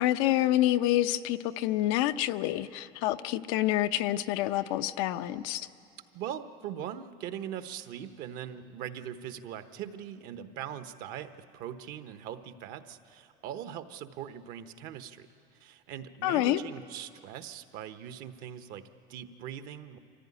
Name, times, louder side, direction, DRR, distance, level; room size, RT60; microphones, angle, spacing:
voice 1, 0.0-5.7 16.2-16.6, left 14 dB, 80° left, 11 dB, 0.7 m, -27 dB
voice 2, 6.1-15.3 15.6-20.0, right 10 dB, 65° right, 10 dB, 1.1 m, -41 dB
24.5 x 15.5 x 9.8 m, 2.6 s
cardioid pair, 135°, 16 cm